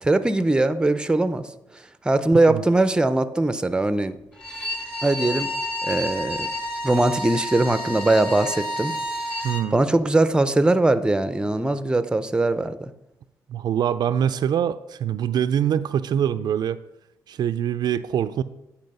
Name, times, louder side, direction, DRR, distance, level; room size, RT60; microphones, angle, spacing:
voice 1, 0.0-1.5 2.0-4.2 5.0-5.5 5.8-6.5 6.8-8.9 9.7-12.9, right 2 dB, 10° right, 12 dB, 0.6 m, -21 dB
Bowed string instrument, 4.3-9.7, equal, 15° left, 2.1 m, -30 dB
voice 2, 9.4-9.8 13.5-16.8 17.3-18.4, right 9 dB, 65° right, 12 dB, 0.4 m, -24 dB
9.7 x 4.3 x 5.4 m, 0.89 s
cardioid pair, 70°, 8 cm